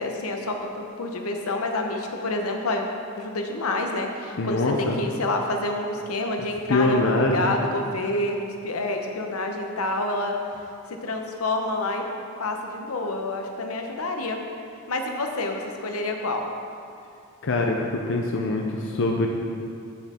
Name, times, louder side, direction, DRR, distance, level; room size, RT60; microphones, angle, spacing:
voice 1, 0.0-2.8 3.2-10.4 10.9-12.1 12.4-14.4 14.9-16.4, left 2 dB, 85° left, 3 dB, 0.8 m, -28 dB
voice 2, 4.4-5.0 6.7-7.8 17.4-19.3, left 2 dB, 60° left, 1 dB, 0.6 m, -24 dB
7.3 x 7.1 x 4.3 m, 2.6 s
head